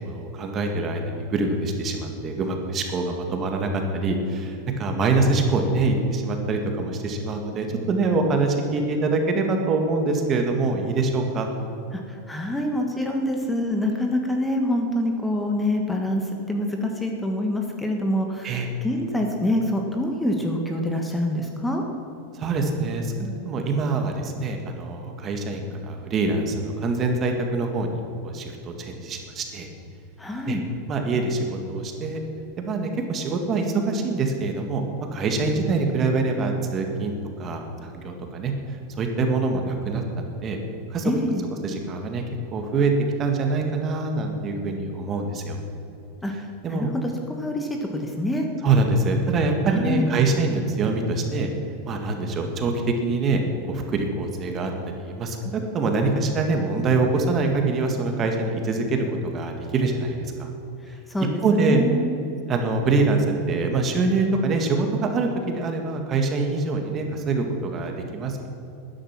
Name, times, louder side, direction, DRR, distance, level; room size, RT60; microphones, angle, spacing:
voice 1, 0.0-11.5 18.4-18.7 22.3-29.7 30.5-30.6 30.9-31.4 31.7-32.2 32.6-34.8 35.1-37.1 37.4-38.5 39.0-40.6 40.9-41.1 41.5-42.2 42.5-42.9 43.2-45.6 46.6-46.9 48.6-51.5 51.8-53.4 53.7-60.5 61.4-61.8 62.5-68.5, right 3 dB, 30° right, 3 dB, 1.9 m, -24 dB
voice 2, 12.3-16.2 16.5-21.8 30.2-30.6 41.0-41.4 46.2-46.3 46.7-48.4 49.7-50.1 61.1-62.2, left 1 dB, 5° left, 2 dB, 1.4 m, -26 dB
12.5 x 10.0 x 6.0 m, 2.8 s
hypercardioid pair, 120°, 0 cm